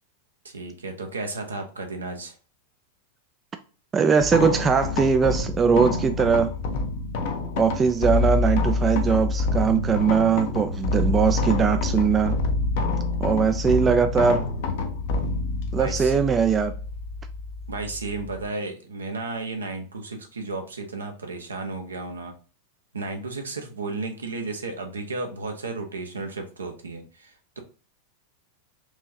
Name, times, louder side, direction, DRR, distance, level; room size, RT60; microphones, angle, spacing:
voice 1, 0.4-2.4 15.8-16.2 17.7-22.3 22.9-27.6, right 3 dB, 75° right, 0.8 m, -33 dB
voice 2, 3.9-6.5 7.6-12.4 13.2-14.4 15.7-16.7, right 6 dB, 20° right, 0.3 m, -21 dB
sound 1, 4.2-18.5, left 3 dB, 50° left, 0.6 m, -27 dB
4.6 x 2.8 x 2.7 m
figure-of-eight pair, 90°, 0 cm